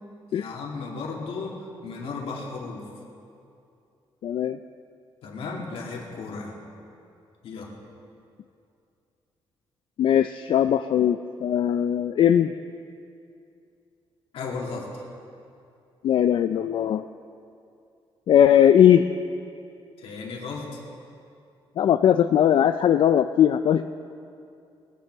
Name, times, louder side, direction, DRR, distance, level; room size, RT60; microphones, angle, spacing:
voice 1, 0.3-2.9 5.2-6.6 7.4-7.7 14.3-15.1 20.0-20.8, left 4 dB, 80° left, -1 dB, 2.3 m, -35 dB
voice 2, 4.2-4.6 10.0-12.5 16.0-17.1 18.3-19.0 21.8-23.9, left 9 dB, 60° left, 9 dB, 0.3 m, -19 dB
20.5 x 9.1 x 4.5 m, 2.5 s
wide cardioid pair, 165°, 10 cm